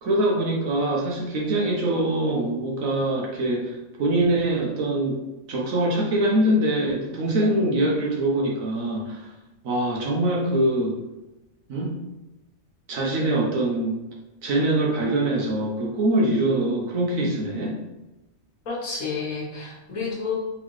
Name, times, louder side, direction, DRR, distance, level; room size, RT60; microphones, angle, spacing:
voice 1, 0.0-5.2 5.5-9.3 9.6-11.0 11.7-11.9 12.9-13.9 14.4-17.8, right 1 dB, 75° right, -2 dB, 1.2 m, -23 dB
voice 2, 18.7-20.3, left 5 dB, 80° left, -3 dB, 1.5 m, -30 dB
4.0 x 3.6 x 3.1 m, 0.99 s
omnidirectional pair, 1.4 m